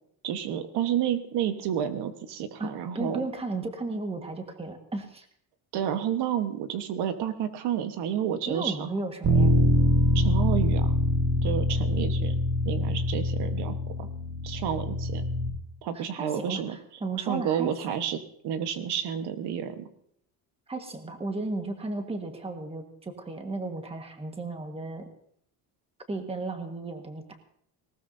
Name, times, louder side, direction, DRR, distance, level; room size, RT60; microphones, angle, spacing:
voice 1, 0.2-3.3 5.7-8.9 10.1-11.0 11.4-14.1 14.4-15.3 15.8-16.8 17.2-19.9, right 9 dB, 75° right, 9 dB, 1.3 m, -30 dB
voice 2, 2.6-5.3 8.5-9.6 15.9-17.7 20.7-25.1 26.1-27.2, right 3 dB, 15° right, 5 dB, 1.5 m, -34 dB
Bass guitar, 9.2-15.5, left 1 dB, 60° right, 2.4 m, -24 dB
19.0 x 18.5 x 2.7 m, 0.67 s
cardioid pair, 165°, 40 cm